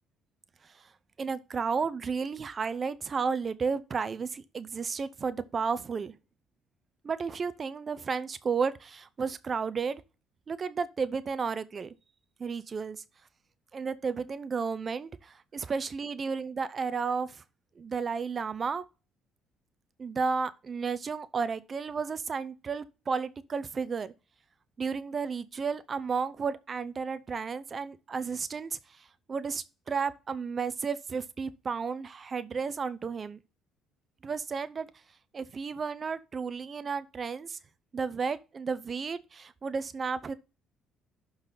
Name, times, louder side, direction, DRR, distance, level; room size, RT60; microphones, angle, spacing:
voice 1, 1.2-6.1 7.0-10.0 10.5-11.9 12.4-13.0 13.7-17.4 17.8-18.8 20.0-24.1 24.8-33.4 34.2-34.9 35.3-37.6 37.9-40.3, right 5 dB, 35° right, 0.6 m, -33 dB
11.5 x 4.0 x 4.0 m
cardioid pair, 110°, 0 cm